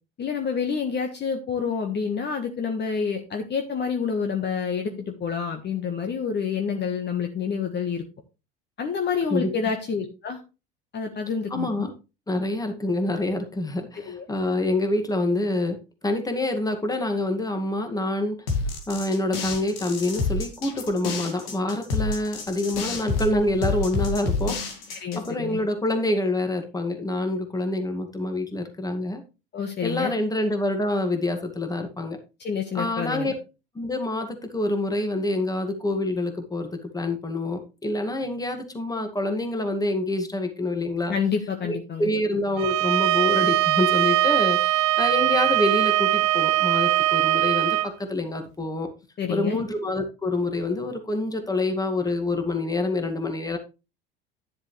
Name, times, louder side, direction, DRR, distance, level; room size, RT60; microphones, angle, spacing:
voice 1, 0.2-8.0 8.8-10.4 10.9-11.9 14.0-14.2 25.0-25.6 29.5-30.1 32.4-33.3 41.1-42.1 49.2-49.6, left 6 dB, 35° left, 5 dB, 1.5 m, -28 dB
voice 2, 11.5-11.9 12.3-15.8 16.0-18.4 18.9-24.6 24.9-29.2 29.8-32.2 32.7-33.3 33.8-41.1 41.6-47.8 48.1-48.9 49.3-53.6, left 2 dB, 10° left, 5 dB, 2.1 m, -26 dB
sound 1, 18.5-25.3, left 3 dB, 80° left, 2.4 m, -28 dB
Bowed string instrument, 42.6-47.9, right 16 dB, 55° right, 0.5 m, -21 dB
10.5 x 7.2 x 3.3 m, 0.29 s
hypercardioid pair, 75°, 29 cm